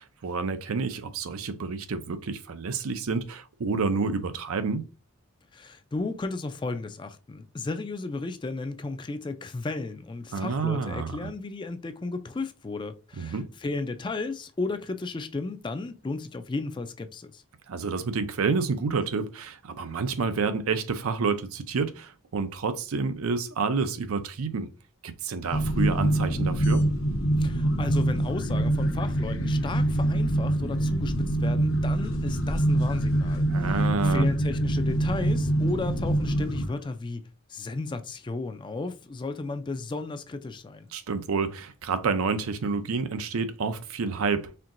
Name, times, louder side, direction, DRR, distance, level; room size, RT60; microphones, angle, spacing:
voice 1, 0.0-4.9 10.3-11.3 13.2-13.5 17.7-24.7 25.0-26.9 33.5-34.3 40.9-44.6, right 4 dB, 80° right, 0.5 m, -29 dB
voice 2, 5.5-17.4 27.4-37.2 37.5-40.9, left 3 dB, 20° left, 0.3 m, -34 dB
sound 1, 25.5-36.7, right 1 dB, 60° left, 0.9 m, -25 dB
4.4 x 3.7 x 2.5 m
head